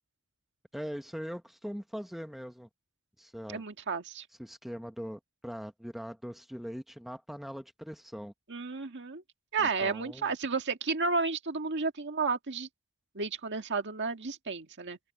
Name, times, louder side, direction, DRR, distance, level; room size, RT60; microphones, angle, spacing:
voice 1, 0.7-2.7 3.2-3.6 4.4-8.3 9.6-10.3, equal, ahead, 0.9 m, -41 dB
voice 2, 3.5-4.2 8.5-9.2 9.5-12.7 13.1-15.0, right 4 dB, 55° right, 1.8 m, -32 dB
open air
head